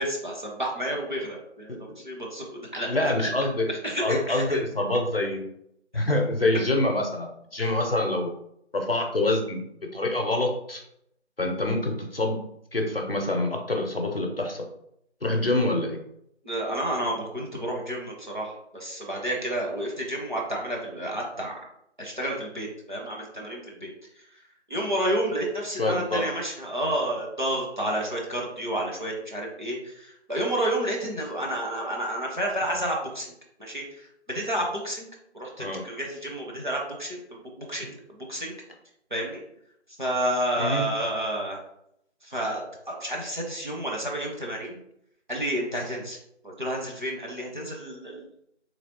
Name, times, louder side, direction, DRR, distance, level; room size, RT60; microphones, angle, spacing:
voice 1, 0.0-2.9 3.2-3.3 3.8-4.6 16.4-21.5 22.0-23.9 24.7-33.3 33.6-35.1 35.3-38.0 38.3-38.5 39.1-39.4 40.0-41.6 42.2-44.8 45.3-46.2 46.4-48.3, right 1 dB, 45° right, -2 dB, 0.7 m, -30 dB
voice 2, 2.9-3.7 4.0-5.4 5.9-8.3 8.7-9.6 9.9-10.8 11.4-12.4 12.7-14.7 15.2-16.0 25.8-26.2 35.6-35.8 40.6-40.8, left 2 dB, 55° left, 2 dB, 0.6 m, -26 dB
3.2 x 2.8 x 2.8 m, 0.75 s
figure-of-eight pair, 170°, 35 cm